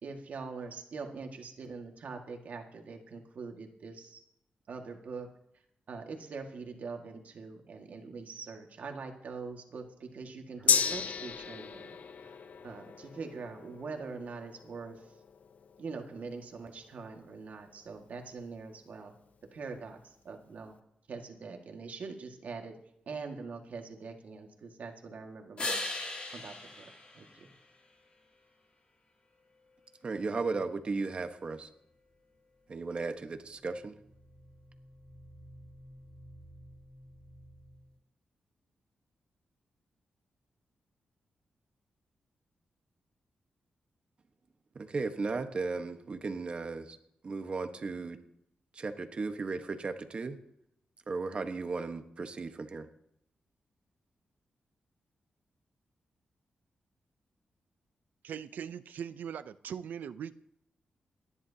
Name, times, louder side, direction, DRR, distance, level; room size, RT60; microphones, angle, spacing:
voice 1, 0.0-4.2 4.7-5.3 5.9-12.0 12.2-12.4 12.6-15.0 15.8-19.1 19.5-20.8 21.1-22.8 23.1-25.9 26.3-26.9 27.1-27.5, right 4 dB, 65° right, 3 dB, 1.9 m, -43 dB
sound 1, 10.5-15.4, right 1 dB, 5° right, 3.0 m, -62 dB
Gong, 10.7-18.4 18.8-18.9, left 7 dB, 60° left, 0.6 m, -35 dB
sound 2, 25.6-28.1 33.9-37.9, left 2 dB, 40° left, 3.0 m, -42 dB
voice 2, 30.0-31.7 32.7-33.9 44.7-47.0 47.2-48.2 48.7-50.4 51.1-52.9, right 4 dB, 40° right, 7 dB, 1.3 m, -35 dB
voice 3, 58.2-60.3, right 8 dB, 85° right, 14 dB, 0.5 m, -40 dB
28.5 x 11.0 x 2.9 m, 0.77 s
wide cardioid pair, 120°, 3 cm